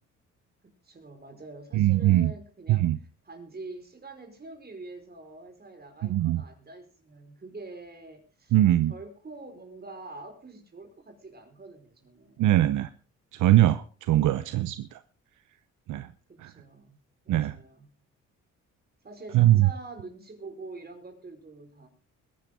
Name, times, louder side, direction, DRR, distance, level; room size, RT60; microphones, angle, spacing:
voice 1, 0.6-2.9 3.3-8.5 8.9-12.5 16.3-17.0 17.2-17.9 19.0-21.9, right 3 dB, 30° right, 5 dB, 4.9 m, -45 dB
voice 2, 1.7-2.3 2.7-3.0 6.0-6.4 8.5-8.9 12.4-12.9 13.3-15.0 15.9-16.1 16.4-16.5 17.3-17.5 19.3-19.7, right 14 dB, 80° right, 12 dB, 0.8 m, -22 dB
21.5 x 10.5 x 3.7 m, 0.34 s
cardioid pair, 90°, 30 cm